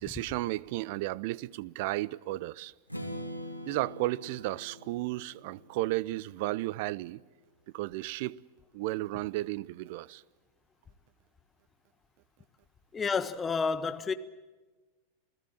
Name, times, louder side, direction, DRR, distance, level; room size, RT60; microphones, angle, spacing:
voice 1, 0.0-2.7 3.7-7.2 7.7-8.4 8.7-10.2, right 18 dB, 50° right, 0.7 m, -33 dB
Strum, 2.9-6.8, equal, 85° right, 3.0 m, -44 dB
voice 2, 12.9-14.1, left 5 dB, 20° left, 1.3 m, -30 dB
28.5 x 18.0 x 7.5 m
figure-of-eight pair, 90°, 0 cm